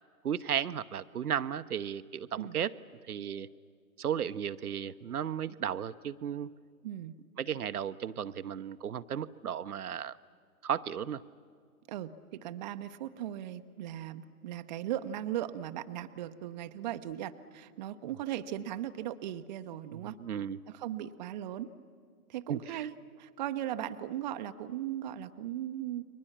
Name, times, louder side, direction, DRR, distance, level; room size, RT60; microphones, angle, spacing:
voice 1, 0.2-2.7 3.1-3.5 4.0-6.5 7.4-10.2 10.6-11.2 19.9-20.6 22.5-22.9, right 9 dB, 70° right, 12 dB, 0.8 m, -34 dB
voice 2, 6.8-7.2 11.9-20.2 20.7-21.7 22.3-26.0, right 12 dB, 30° right, 9 dB, 0.7 m, -38 dB
30.0 x 23.0 x 7.3 m, 2.1 s
figure-of-eight pair, 130°, 46 cm